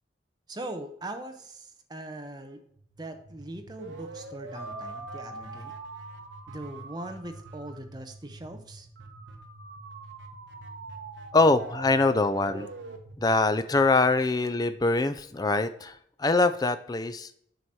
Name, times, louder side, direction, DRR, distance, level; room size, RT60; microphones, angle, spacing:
voice 1, 0.5-2.6 3.0-5.7 6.5-8.9, right 1 dB, 20° right, 5 dB, 0.8 m, -40 dB
sound 1, 2.8-14.6, right 2 dB, 70° right, 1.1 m, -44 dB
Mallet percussion, 4.5-7.3, right 2 dB, 35° right, 1.9 m, -47 dB
voice 2, 11.3-12.7 13.2-17.3, left 3 dB, 20° left, 11 dB, 0.4 m, -24 dB
7.8 x 4.6 x 4.2 m, 0.68 s
head